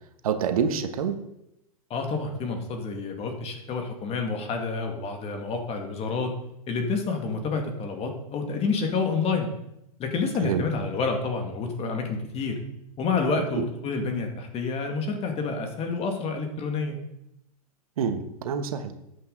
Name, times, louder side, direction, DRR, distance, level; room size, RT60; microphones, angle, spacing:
voice 1, 0.2-1.2 10.4-10.6 13.5-13.6 18.0-18.9, right 7 dB, 65° right, 8 dB, 1.3 m, -27 dB
voice 2, 1.9-6.3 6.7-9.5 10.0-12.6 13.0-17.0, left 4 dB, 30° left, 4 dB, 2.1 m, -28 dB
12.5 x 8.4 x 4.0 m, 0.82 s
hypercardioid pair, 105°, 19 cm